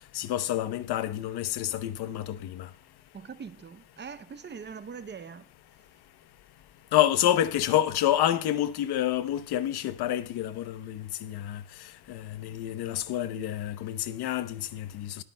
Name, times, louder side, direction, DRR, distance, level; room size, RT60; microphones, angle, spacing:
voice 1, 0.1-2.7 6.9-11.6 12.1-15.1, left 12 dB, 70° left, 1.0 m, -28 dB
voice 2, 3.1-5.4, right 6 dB, 25° right, 0.7 m, -42 dB
20.0 x 9.6 x 2.2 m
cardioid pair, 145°, 40 cm